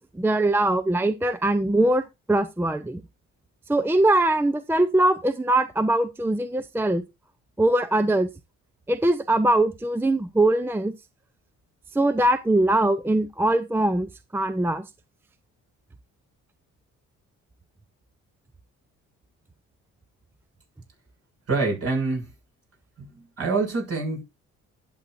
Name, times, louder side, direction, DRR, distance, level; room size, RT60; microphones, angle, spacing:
voice 1, 0.2-2.0 2.3-3.0 3.7-7.0 7.6-8.3 8.9-10.9 11.9-14.8, right 1 dB, 5° right, 0.6 m, -22 dB
voice 2, 21.5-22.3 23.0-24.2, right 3 dB, 55° right, 6.9 m, -26 dB
11.5 x 7.6 x 2.6 m
cardioid pair, 90°, 30 cm